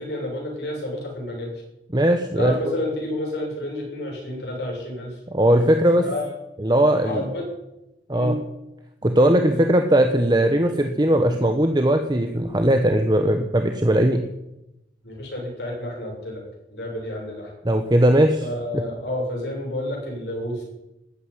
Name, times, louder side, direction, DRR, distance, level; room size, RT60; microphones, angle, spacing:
voice 1, 0.0-1.6 2.3-5.2 5.9-6.3 7.0-7.5 8.1-8.4 9.2-9.7 15.0-16.4 16.7-17.5 18.4-20.6, left 1 dB, 70° left, -2 dB, 7.0 m, -30 dB
voice 2, 1.9-2.7 5.3-6.0 6.6-7.2 8.1-8.3 9.0-14.2 17.6-18.4, right 1 dB, 25° right, 5 dB, 1.0 m, -19 dB
14.0 x 9.3 x 9.9 m, 0.93 s
head